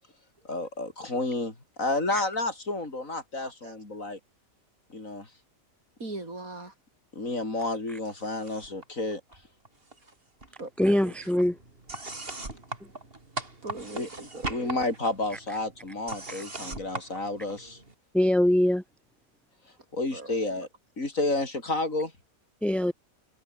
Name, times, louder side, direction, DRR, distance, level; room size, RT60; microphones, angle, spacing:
voice 1, 0.5-4.2 4.9-5.3 7.1-9.2 13.9-14.1 14.5-17.8 19.9-20.7 21.0-22.1, left 2 dB, 70° left, 5.5 m, -30 dB
voice 2, 3.4-3.8 6.0-6.7 10.6-11.3 12.5-12.6 13.6-14.8 20.1-20.3, right 2 dB, 80° right, 5.9 m, -40 dB
sound 1, 8.0-8.8 9.1-10.1 10.4-17.9, right 2 dB, 40° right, 3.8 m, -40 dB
voice 3, 10.8-11.5 18.1-18.8 22.6-22.9, left 1 dB, ahead, 0.9 m, -22 dB
omnidirectional pair, 1.5 m